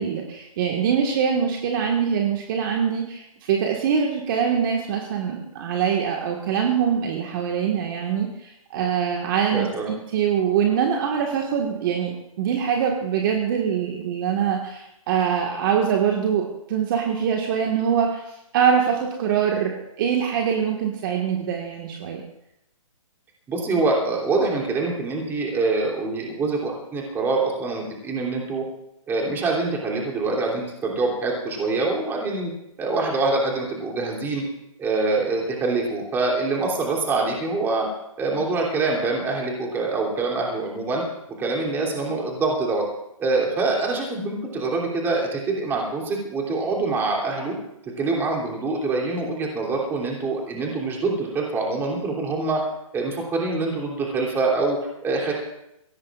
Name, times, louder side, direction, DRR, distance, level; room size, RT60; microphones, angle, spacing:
voice 1, 0.0-18.2 18.5-22.2, right 7 dB, 35° right, 1 dB, 1.7 m, -23 dB
voice 2, 9.5-9.9 23.5-28.6 29.1-32.5 32.8-34.4 34.8-37.9 38.2-41.0 41.4-42.8 43.2-47.5 48.0-52.6 52.9-55.3, right 3 dB, 10° right, -2 dB, 3.1 m, -25 dB
23.0 x 17.0 x 2.5 m, 0.81 s
hypercardioid pair, 155°, 18 cm